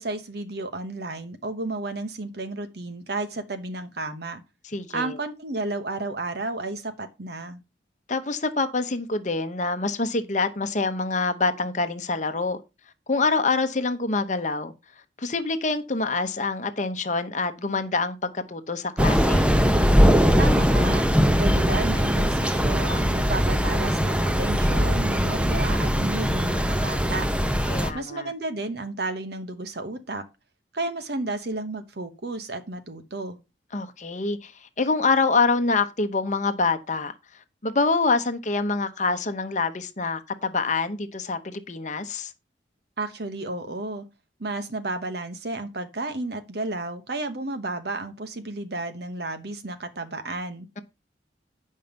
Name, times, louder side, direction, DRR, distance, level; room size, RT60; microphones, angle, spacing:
voice 1, 0.0-4.4 4.9-7.6 20.4-21.0 21.4-27.3 27.9-30.2 30.7-33.4 43.0-44.0 44.4-50.7, right 2 dB, 60° right, 1.0 m, -32 dB
voice 2, 4.7-5.2 8.1-12.6 13.1-14.7 15.2-19.5 27.7-28.3 33.7-37.1 37.6-42.3, left 3 dB, 40° left, 0.9 m, -26 dB
Thunder / Rain, 19.0-27.9, equal, 5° right, 0.7 m, -21 dB
9.2 x 5.5 x 5.2 m
head